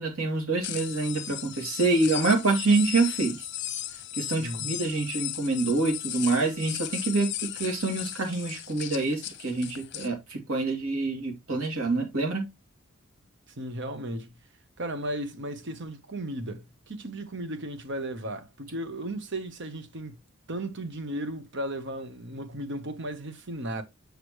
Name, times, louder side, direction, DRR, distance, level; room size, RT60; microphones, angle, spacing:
voice 1, 0.0-3.5 4.2-7.3 7.6-12.4, right 3 dB, 85° right, 2.6 m, -26 dB
sound 1, 0.6-10.1, left 13 dB, 55° left, 0.8 m, -36 dB
voice 2, 4.4-4.7 13.5-14.3 14.8-20.2 20.5-23.8, right 1 dB, 55° right, 1.1 m, -35 dB
6.6 x 6.4 x 3.1 m
head